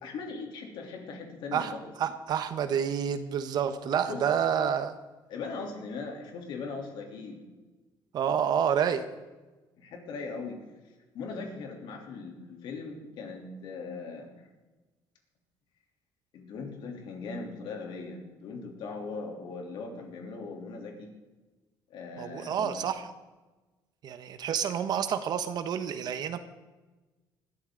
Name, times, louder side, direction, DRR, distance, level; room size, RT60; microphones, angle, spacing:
voice 1, 0.0-1.9 4.1-4.2 5.3-7.4 9.8-10.6 11.1-14.3 16.3-21.1 21.9-22.9, left 4 dB, 70° left, 2 dB, 3.2 m, -39 dB
voice 2, 2.0-5.0 8.1-9.1 22.2-23.1 24.0-26.4, right 8 dB, 55° right, 10 dB, 1.1 m, -29 dB
20.0 x 13.0 x 3.9 m, 1.2 s
cardioid pair, 130°, 8 cm